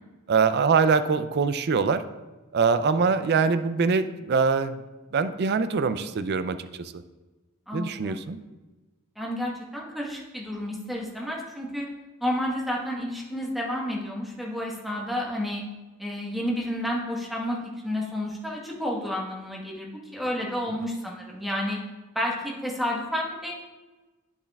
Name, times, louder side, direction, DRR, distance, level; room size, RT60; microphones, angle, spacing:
voice 1, 0.3-2.0 2.5-4.8 5.1-6.9 7.7-8.4, right 5 dB, 50° right, 11 dB, 0.4 m, -23 dB
voice 2, 7.7-8.2 9.2-11.9 12.2-15.6 16.0-17.6 17.8-21.8 22.1-23.5, left 1 dB, ahead, -3 dB, 1.2 m, -30 dB
9.8 x 7.1 x 2.3 m, 1.2 s
head